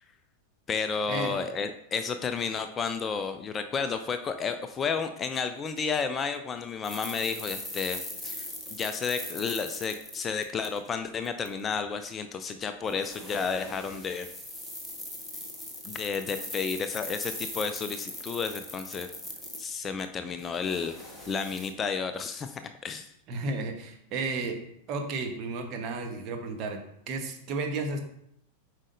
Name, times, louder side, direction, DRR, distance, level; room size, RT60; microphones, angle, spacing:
voice 1, 0.7-8.5 8.7-14.3 15.8-19.1 19.6-20.9 21.3-23.1, left 5 dB, 20° left, 9 dB, 0.4 m, -32 dB
sound 1, 6.8-10.9 11.2-11.5 12.9-20.0 20.4-21.7, left 1 dB, 5° left, 1.3 m, -40 dB
voice 2, 23.3-24.6 24.9-26.8 27.1-28.0, right 3 dB, 35° right, 3 dB, 1.0 m, -32 dB
7.3 x 5.0 x 2.6 m, 0.73 s
figure-of-eight pair, 90°, 0 cm